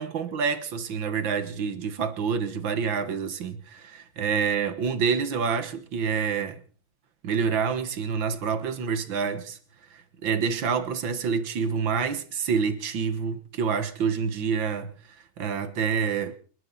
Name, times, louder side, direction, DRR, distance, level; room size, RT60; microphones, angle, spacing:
voice 1, 0.0-6.6 7.2-9.6 9.9-14.9 15.4-16.3, right 6 dB, 65° right, 2.1 m, -27 dB
29.0 x 11.5 x 4.1 m
omnidirectional pair, 2.3 m